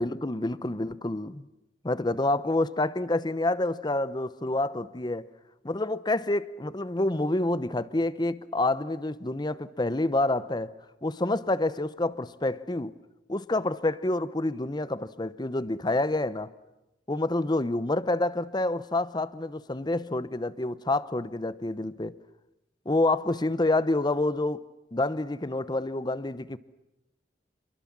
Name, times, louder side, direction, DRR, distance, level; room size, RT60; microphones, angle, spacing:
voice 1, 0.0-1.5 1.8-5.3 5.6-10.7 11.0-12.9 13.3-16.5 17.1-22.1 22.9-24.6 24.9-26.6, left 2 dB, 25° left, 0.8 m, -28 dB
27.0 x 22.5 x 7.4 m
head